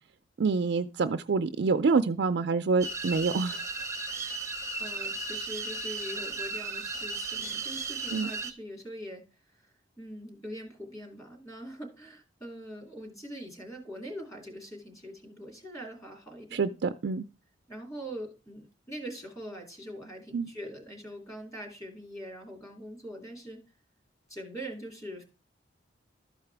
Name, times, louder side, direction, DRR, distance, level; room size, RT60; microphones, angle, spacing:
voice 1, 0.4-3.6 8.1-8.3 16.5-17.2 20.3-20.5, right 4 dB, 60° right, 9 dB, 0.4 m, -27 dB
sound 1, 2.8-8.5, right 3 dB, 15° right, 0.7 m, -35 dB
voice 2, 4.0-4.5 4.8-9.2 9.5-16.7 17.7-23.6 24.3-25.2, equal, 15° left, 2 dB, 2.6 m, -43 dB
13.0 x 4.8 x 3.4 m, 0.33 s
head